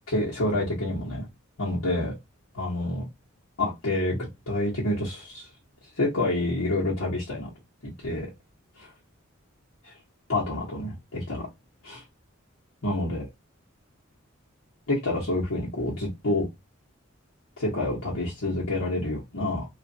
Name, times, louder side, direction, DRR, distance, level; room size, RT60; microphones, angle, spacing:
voice 1, 0.1-1.3 1.6-2.1 2.5-3.0 3.6-4.2 4.5-5.5 6.0-7.5 7.8-8.3 9.8-9.9 10.3-11.5 11.8-12.0 12.8-13.3 14.9-16.5 17.6-19.7, left 1 dB, 85° left, 1.1 m, -28 dB
3.1 x 2.5 x 2.6 m
head